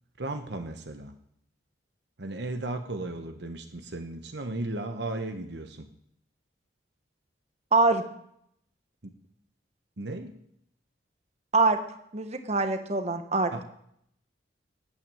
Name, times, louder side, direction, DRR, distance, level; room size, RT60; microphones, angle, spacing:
voice 1, 0.2-1.2 2.2-5.9 9.0-9.1 10.0-10.4 13.5-13.6, right 2 dB, 60° right, 7 dB, 1.1 m, -35 dB
voice 2, 7.7-8.0 11.5-11.8 12.1-13.6, right 3 dB, 35° right, 8 dB, 1.2 m, -24 dB
13.5 x 9.2 x 9.1 m, 0.73 s
head